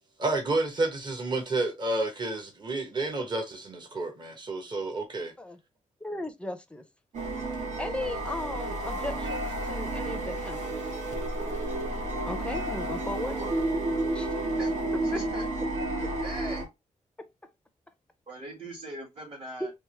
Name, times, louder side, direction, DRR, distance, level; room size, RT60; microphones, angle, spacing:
voice 1, 0.2-5.3, right 2 dB, 35° right, 1.0 m, -30 dB
voice 2, 6.0-6.8 7.8-10.7 12.3-13.4 14.1-14.4 15.1-15.2 17.2-17.5 19.6-19.7, left 1 dB, 10° left, 0.5 m, -36 dB
sound 1, 7.1-16.7, right 2 dB, 70° right, 1.3 m, -31 dB
voice 3, 13.2-13.5 14.6-14.7 15.0-15.4 16.2-16.6 18.3-19.7, right 1 dB, 50° right, 1.7 m, -40 dB
3.5 x 2.9 x 3.1 m
wide cardioid pair, 130°, 13 cm